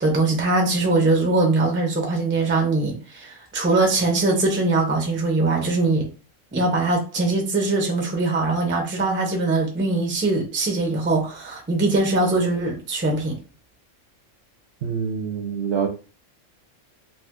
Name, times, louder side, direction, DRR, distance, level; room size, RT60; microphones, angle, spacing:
voice 1, 0.0-6.0 6.5-13.3, right 2 dB, 15° right, 0.4 m, -22 dB
voice 2, 14.8-15.9, right 6 dB, 65° right, 0.8 m, -25 dB
2.6 x 2.5 x 3.5 m
omnidirectional pair, 1.3 m